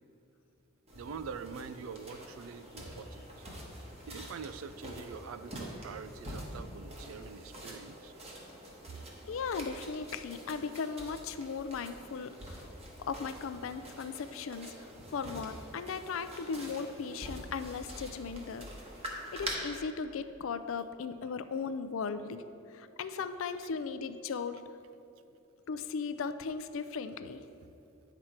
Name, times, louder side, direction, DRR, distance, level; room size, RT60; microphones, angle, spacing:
sound 1, 0.9-19.5, right 1 dB, 30° right, 1.3 m, -46 dB
voice 1, 0.9-3.4 4.1-8.1 8.9-9.0 23.6-23.7 27.6-27.7, right 6 dB, 85° right, 12 dB, 0.4 m, -45 dB
voice 2, 9.3-12.7 13.0-18.7 19.3-22.4 22.7-24.6 25.7-27.4, left 5 dB, 70° left, 12 dB, 0.4 m, -37 dB
9.5 x 6.0 x 4.3 m, 2.8 s
head